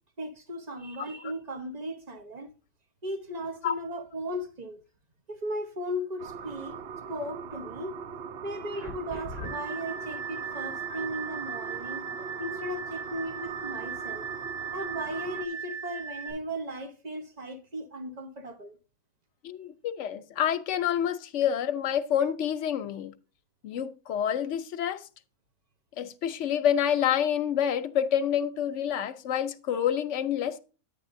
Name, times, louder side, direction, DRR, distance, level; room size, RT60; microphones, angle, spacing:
voice 1, 0.2-2.5 3.0-4.8 5.3-6.8 7.1-8.0 8.4-12.1 12.4-14.3 14.7-18.8, equal, 30° right, 1.1 m, -36 dB
sound 1, 6.2-15.4, right 6 dB, 55° right, 0.7 m, -41 dB
sound 2, 8.7-16.3, right 5 dB, 75° right, 6.1 m, -38 dB
voice 2, 19.4-23.1 23.6-25.1 26.0-30.6, left 9 dB, 60° left, 1.0 m, -28 dB
10.0 x 8.6 x 2.6 m
omnidirectional pair, 1.5 m